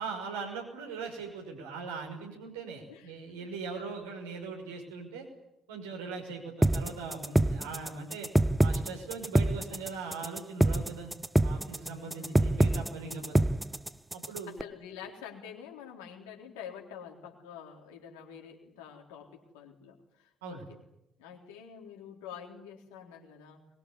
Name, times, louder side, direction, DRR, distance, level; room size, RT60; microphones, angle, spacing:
voice 1, 0.0-5.3 5.7-8.3 8.6-11.1 11.4-13.4 14.1-14.6 20.4-20.6, right 4 dB, 75° right, 1 dB, 5.8 m, -40 dB
voice 2, 2.9-4.0 6.1-6.3 12.0-12.5 13.0-13.4 14.5-20.7 21.2-23.7, left 8 dB, 70° left, 2 dB, 3.9 m, -48 dB
sound 1, 6.6-14.6, right 1 dB, 10° right, 0.9 m, -26 dB
23.5 x 22.0 x 9.9 m, 0.86 s
figure-of-eight pair, 45°, 0 cm